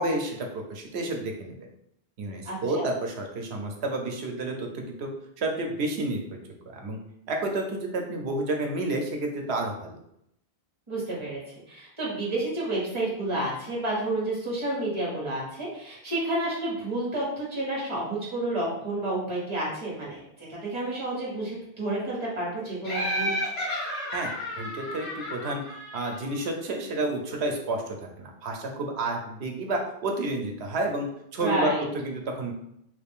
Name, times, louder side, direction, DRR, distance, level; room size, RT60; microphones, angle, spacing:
voice 1, 0.0-1.5 2.2-5.1 5.4-6.4 6.7-7.0 7.3-10.0 24.1-24.3 24.6-25.6 25.9-32.5, right 2 dB, 90° right, 2 dB, 0.9 m, -30 dB
voice 2, 2.4-2.8 10.9-11.4 11.7-23.3 31.4-31.8, right 1 dB, 30° right, -6 dB, 1.3 m, -30 dB
Laughter, 22.8-26.5, equal, 75° left, 1.5 m, -32 dB
3.1 x 2.4 x 3.5 m, 0.76 s
omnidirectional pair, 1.0 m